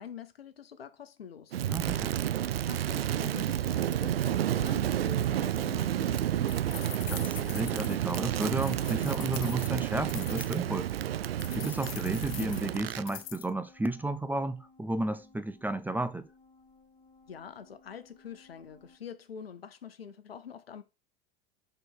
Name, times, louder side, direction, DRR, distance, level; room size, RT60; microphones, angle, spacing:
voice 1, 0.0-1.6 2.7-6.6 17.3-20.8, left 7 dB, 90° left, 0.9 m, -45 dB
Crackle, 1.5-13.1, right 11 dB, 85° right, 0.5 m, -30 dB
voice 2, 1.6-2.2 7.1-10.9 11.3-16.3, right 2 dB, 5° right, 0.4 m, -33 dB
sound 1, 6.5-10.6 11.4-13.5, left 14 dB, 55° left, 0.8 m, -44 dB
sound 2, 11.1-19.0, left 3 dB, 25° left, 1.6 m, -60 dB
6.1 x 4.3 x 4.8 m
hypercardioid pair, 90°, 29 cm